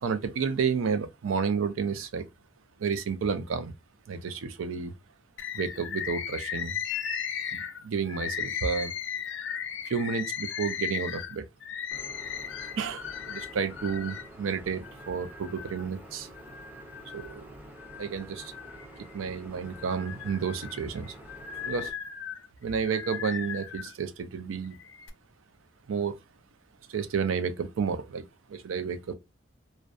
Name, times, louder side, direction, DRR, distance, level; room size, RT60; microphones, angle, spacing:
voice 1, 0.0-2.3 2.8-3.7 4.1-4.9 5.5-6.8 7.5-8.9 9.9-11.5 12.7-16.3 17.1-17.4 18.0-18.5 19.1-21.1 21.7-21.9 22.6-24.8 25.9-26.2 26.9-29.1, right 6 dB, 90° right, 0.4 m, -31 dB
Bird, 5.4-14.3 14.8-15.8 16.3-17.4 17.8-19.2 19.7-23.9 24.6-25.1, left 8 dB, 65° left, 0.4 m, -37 dB
sound 1, 11.9-21.9, right 1 dB, 10° right, 0.4 m, -48 dB
2.6 x 2.1 x 2.3 m
head